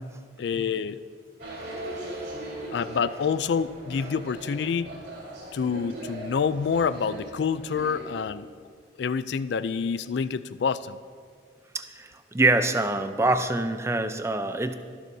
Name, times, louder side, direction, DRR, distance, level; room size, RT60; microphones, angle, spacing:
voice 1, 0.4-1.0 2.7-5.0 5.5-8.5 9.0-11.0, left 6 dB, 60° left, 15 dB, 0.3 m, -27 dB
sound 1, 1.4-8.1, right 1 dB, 60° right, 4.1 m, -39 dB
voice 2, 11.7-14.7, right 2 dB, 15° right, 9 dB, 0.5 m, -25 dB
25.5 x 12.0 x 2.7 m, 2.1 s
head